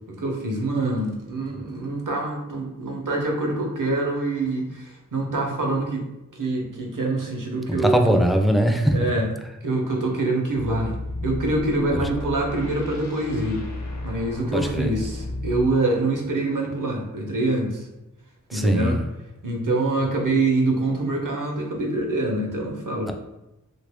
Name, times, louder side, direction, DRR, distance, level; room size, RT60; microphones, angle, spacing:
voice 1, 0.2-6.0 6.3-8.2 8.9-9.3 9.6-11.0 11.2-13.6 14.0-17.9 18.5-19.0 19.4-23.1, right 2 dB, 75° right, 0 dB, 0.8 m, -25 dB
voice 2, 7.7-9.0 14.5-14.9 18.5-19.0, equal, ahead, 4 dB, 0.3 m, -20 dB
sound 1, 10.5-15.8, left 2 dB, 60° left, 0.7 m, -33 dB
2.8 x 2.5 x 3.4 m, 0.94 s
wide cardioid pair, 55°, 32 cm